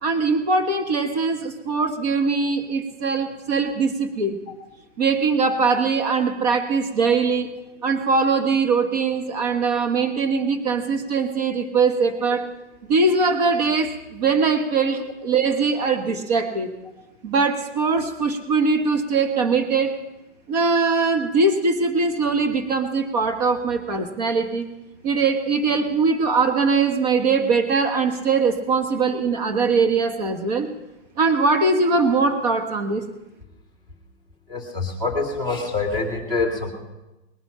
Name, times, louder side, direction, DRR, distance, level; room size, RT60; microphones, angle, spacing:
voice 1, 0.0-4.4 5.0-7.5 7.8-12.5 12.9-16.7 17.2-20.0 20.5-24.7 25.0-30.7 31.2-33.0, right 4 dB, 35° right, 7 dB, 1.5 m, -21 dB
voice 2, 34.5-36.7, left 3 dB, 15° right, 0 dB, 2.2 m, -25 dB
20.5 x 12.0 x 5.6 m, 1.0 s
hypercardioid pair, 180°, 36 cm